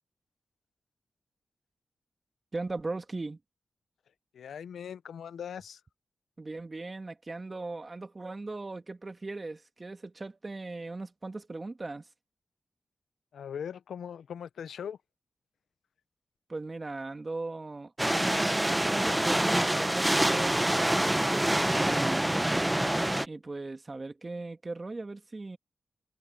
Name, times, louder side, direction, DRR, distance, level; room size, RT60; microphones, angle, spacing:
voice 1, 2.5-3.4 6.4-12.1 16.5-22.4 23.3-25.6, right 3 dB, 40° right, 2.0 m, -39 dB
voice 2, 4.3-5.8 13.3-15.0, left 8 dB, 90° left, 0.5 m, -40 dB
sound 1, 18.0-23.3, right 1 dB, 15° right, 0.7 m, -26 dB
cardioid pair, 45°, 0 cm